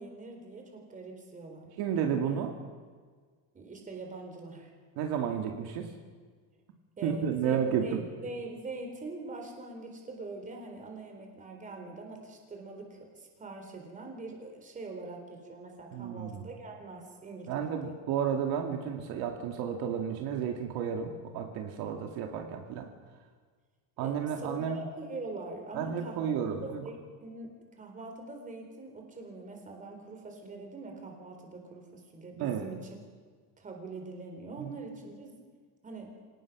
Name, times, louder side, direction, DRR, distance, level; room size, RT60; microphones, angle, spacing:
voice 1, 0.0-1.8 3.5-4.7 7.0-18.0 24.0-26.3 26.6-32.9 33.6-35.4 35.8-36.2, right 3 dB, 20° right, 3 dB, 4.0 m, -43 dB
voice 2, 1.8-2.5 5.0-5.9 7.0-8.0 15.9-16.5 17.5-22.9 24.0-24.8 25.7-26.8 32.4-32.7 34.6-34.7, right 8 dB, 60° right, 3 dB, 2.3 m, -32 dB
26.5 x 18.5 x 6.1 m, 1.5 s
cardioid pair, 165°, 42 cm